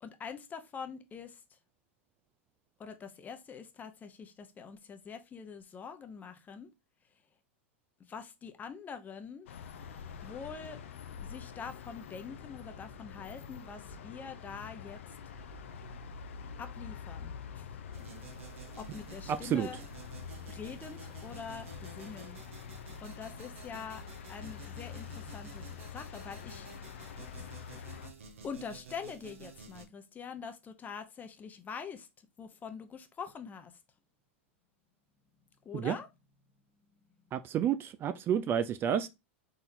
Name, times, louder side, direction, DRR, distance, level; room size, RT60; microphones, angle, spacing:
voice 1, 0.0-1.6 2.8-6.7 7.1-7.2 8.0-9.5 10.2-10.8 11.2-15.2 16.6-17.7 18.8-19.8 20.5-22.4 23.0-24.0 24.3-26.7 27.3-27.5 27.8-28.0 28.4-33.8 35.6-36.1 36.9-37.1, left 6 dB, 25° left, 0.8 m, -45 dB
sound 1, 9.5-28.1, left 7 dB, 75° left, 0.6 m, -46 dB
sound 2, 17.9-29.9, right 5 dB, 80° right, 1.3 m, -51 dB
voice 2, 37.3-39.1, right 9 dB, 35° right, 0.4 m, -30 dB
4.1 x 4.1 x 2.7 m
hypercardioid pair, 105°, 7 cm